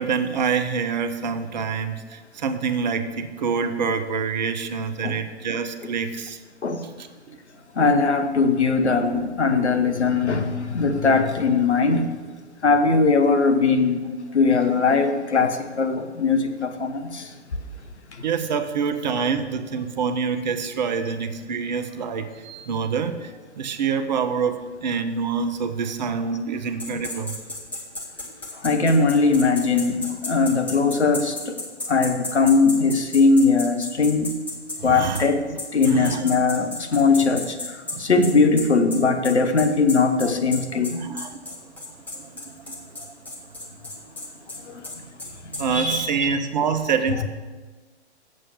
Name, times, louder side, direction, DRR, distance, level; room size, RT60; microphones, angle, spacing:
voice 1, 0.0-6.4 7.0-7.4 18.2-27.4 34.8-36.2 37.9-38.1 40.2-40.3 40.7-43.9 44.2-44.4 45.6-47.2, right 6 dB, 40° right, 9 dB, 0.7 m, -27 dB
voice 2, 7.7-12.1 12.6-14.0 14.3-17.3 18.1-18.3 28.5-31.6 31.9-34.3 34.8-35.4 35.7-41.1 44.6-44.9 45.4-46.3, left 4 dB, 75° left, 6 dB, 1.0 m, -20 dB
sound 1, 26.8-34.8 35.1-35.3 35.6-45.7, left 2 dB, 5° left, 0.9 m, -33 dB
7.6 x 7.0 x 6.6 m, 1.3 s
figure-of-eight pair, 120°, 34 cm